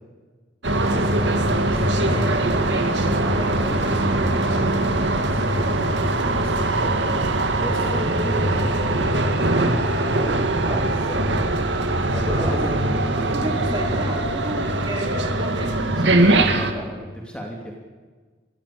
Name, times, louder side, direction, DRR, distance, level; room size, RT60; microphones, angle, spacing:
sound 1, 0.6-16.7, right 2 dB, 80° right, 2.3 m, -21 dB
voice 1, 0.8-2.6 2.9-8.9 10.1-11.2 12.1-12.9 16.1-17.7, equal, 5° left, 0 dB, 2.9 m, -35 dB
voice 2, 1.5-4.4 9.7-10.3 12.2-17.1, right 1 dB, 25° right, 2 dB, 3.9 m, -33 dB
23.5 x 16.5 x 8.7 m, 1.4 s
head